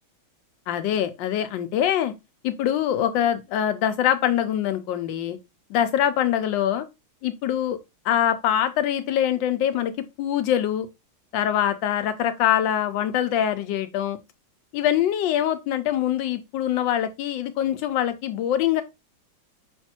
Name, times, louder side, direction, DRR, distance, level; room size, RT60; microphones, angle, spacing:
voice 1, 0.7-2.1 2.4-5.4 5.7-6.9 7.2-7.8 8.0-9.9 10.2-10.9 11.3-14.2 14.7-18.8, left 10 dB, 75° left, 1.2 m, -24 dB
5.2 x 3.2 x 2.8 m
omnidirectional pair, 2.2 m